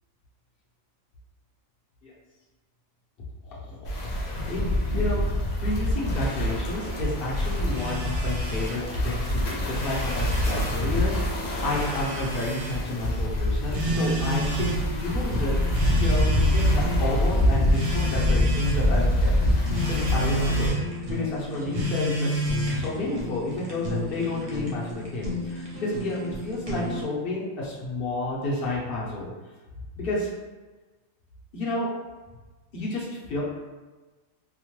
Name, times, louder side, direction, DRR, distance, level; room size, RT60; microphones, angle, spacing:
voice 1, 3.4-5.3 5.6-11.1 11.6-15.6 16.0-20.8 21.1-22.4 22.7-29.3 30.0-30.3 31.5-31.9 32.7-33.4, left 2 dB, 50° left, -5 dB, 0.7 m, -31 dB
sound 1, 3.8-20.7, left 1 dB, 85° left, 0.3 m, -25 dB
Telephone, 7.7-8.8 9.6-10.8 11.7-12.8 13.7-14.8 15.7-16.9 17.7-18.8 19.7-20.8 21.7-22.9, equal, 70° right, 1.1 m, -30 dB
Fire, 13.7-27.0, left 1 dB, 40° right, 0.5 m, -34 dB
2.8 x 2.1 x 3.0 m, 1.3 s
omnidirectional pair, 1.5 m